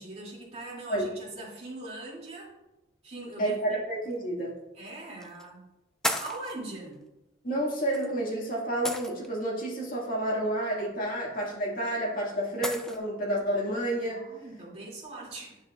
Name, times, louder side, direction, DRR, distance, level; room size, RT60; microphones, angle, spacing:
voice 1, 0.0-2.5 3.0-3.8 4.7-5.7 6.2-7.0 14.1-15.6, right 2 dB, 35° right, -5 dB, 2.7 m, -41 dB
voice 2, 3.4-4.5 7.4-14.2, right 1 dB, 50° left, -4 dB, 2.1 m, -30 dB
sound 1, 4.1-4.2 5.2-5.5 6.0-6.5 7.9-8.1 8.8-9.5 11.4-11.5 12.6-13.0, equal, 5° left, 0.5 m, -33 dB
10.5 x 6.3 x 2.5 m, 0.96 s
head